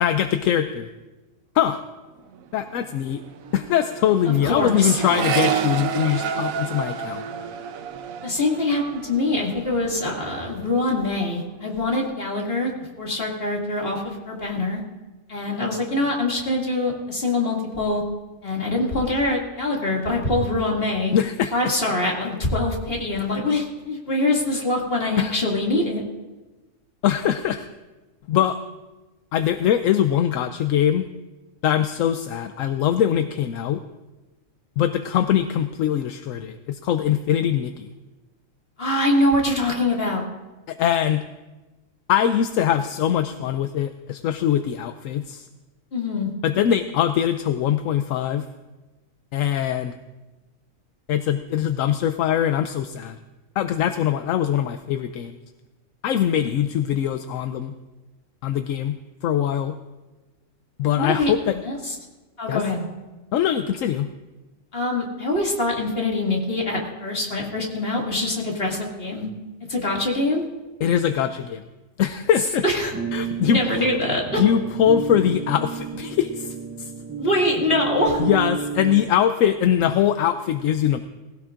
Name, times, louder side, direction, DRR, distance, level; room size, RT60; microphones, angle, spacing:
voice 1, 0.0-0.9 1.5-1.8 2.5-3.2 3.5-7.2 21.1-21.7 25.2-25.3 27.0-27.7 28.3-28.6 29.3-31.1 31.6-33.8 34.8-37.9 40.7-41.2 42.1-45.5 46.4-48.4 49.3-49.9 51.1-53.2 53.6-55.4 56.0-57.7 58.4-59.0 59.2-59.8 60.8-61.6 62.5-62.6 63.3-64.1 70.8-71.6 72.0-72.6 73.1-73.6 74.4-76.9 78.2-81.0, left 10 dB, 80° left, 9 dB, 1.0 m, -22 dB
Accelerating revving vroom, 2.2-2.4 2.7-10.2 10.5-11.1, right 7 dB, 85° right, 1.1 m, -30 dB
voice 2, 4.3-5.0 8.2-14.8 15.3-18.0 18.4-21.1 21.5-26.0 38.8-40.2 45.9-46.3 60.9-61.3 61.6-61.9 62.4-62.8 64.7-69.3 69.7-70.4 72.6-72.9 73.4-74.4 77.2-78.2, left 2 dB, 45° left, -2 dB, 2.6 m, -24 dB
sound 1, 72.9-79.1, right 6 dB, 15° right, 0.5 m, -30 dB
19.5 x 16.5 x 2.5 m, 1.1 s
omnidirectional pair, 1.4 m